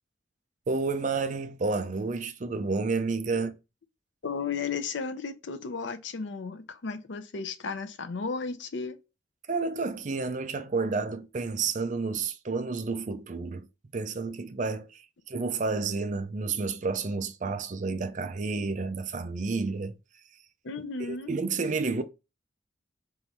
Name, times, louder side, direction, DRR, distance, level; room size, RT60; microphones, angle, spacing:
voice 1, 0.7-3.5 9.5-13.7 13.9-19.9 21.1-22.0, right 4 dB, 40° right, 0.4 m, -30 dB
voice 2, 4.2-9.0 20.6-21.3, left 5 dB, 80° left, 0.6 m, -34 dB
3.6 x 3.1 x 4.2 m
head